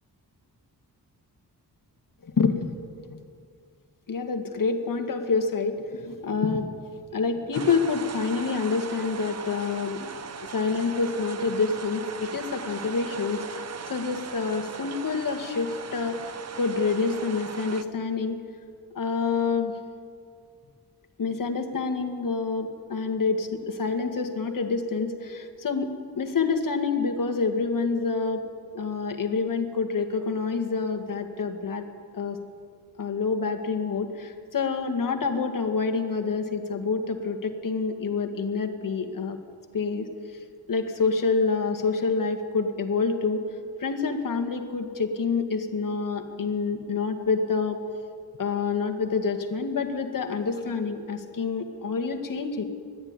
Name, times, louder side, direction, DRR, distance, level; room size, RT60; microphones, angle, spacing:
voice 1, 2.2-2.8 3.1-3.2 4.1-6.7 7.1-10.1 10.5-13.4 13.9-16.2 16.6-18.4 19.0-19.7 21.2-25.9 26.1-28.4 28.7-31.8 32.1-32.4 33.0-39.4 39.7-40.1 40.7-43.4 43.8-47.8 48.4-52.6, left 4 dB, 55° left, 6 dB, 2.0 m, -27 dB
sound 1, 7.5-17.8, right 6 dB, 40° right, 0.8 m, -39 dB
21.0 x 13.5 x 9.7 m, 2.1 s
wide cardioid pair, 130°, 38 cm